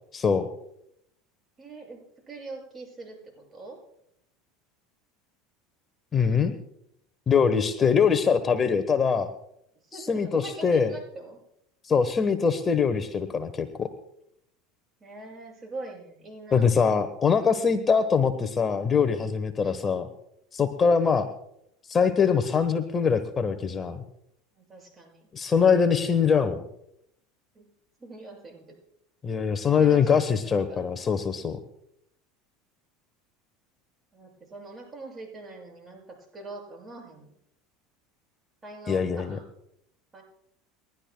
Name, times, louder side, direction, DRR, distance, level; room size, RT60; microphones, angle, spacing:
voice 1, 0.1-0.5 6.1-6.6 7.3-9.3 9.9-10.9 11.8-13.9 16.5-20.1 20.5-21.3 21.9-24.0 25.3-26.6 29.2-31.6 38.9-39.4, left 6 dB, 30° left, 9 dB, 1.1 m, -23 dB
voice 2, 1.6-2.0 2.3-3.8 9.8-11.4 11.9-12.1 15.0-16.7 17.4-18.1 19.6-19.8 20.8-21.0 24.5-25.3 27.5-27.6 28.0-28.8 29.6-30.8 34.1-37.4 38.6-39.5 40.1-40.2, right 2 dB, 25° right, 0 dB, 6.8 m, -43 dB
29.5 x 12.0 x 2.2 m, 0.75 s
hypercardioid pair, 80°, 0 cm